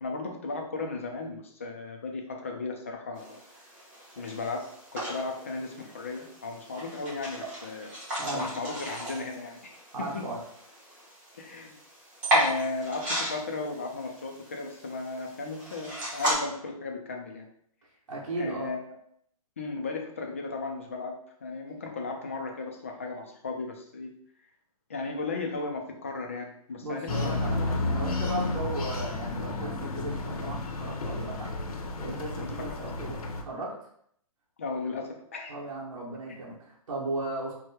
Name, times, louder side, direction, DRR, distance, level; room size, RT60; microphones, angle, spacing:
voice 1, 0.0-3.4 4.2-4.6 4.9-7.9 8.3-10.2 11.4-11.8 12.3-17.5 18.4-19.0 19.6-21.1 21.4-24.1 24.9-27.7 32.4-32.8 34.6-35.5 36.3-36.4, left 3 dB, 20° left, 2 dB, 0.4 m, -35 dB
sound 1, 3.2-16.3, right 1 dB, 10° right, 0.7 m, -35 dB
voice 2, 9.9-10.4 18.1-18.7 26.8-31.5 32.0-33.7 35.5-37.5, right 2 dB, 55° right, -5 dB, 1.5 m, -36 dB
sound 2, 27.1-33.4, left 2 dB, 80° left, 0.8 m, -32 dB
4.7 x 2.1 x 4.3 m, 0.67 s
hypercardioid pair, 180°, 19 cm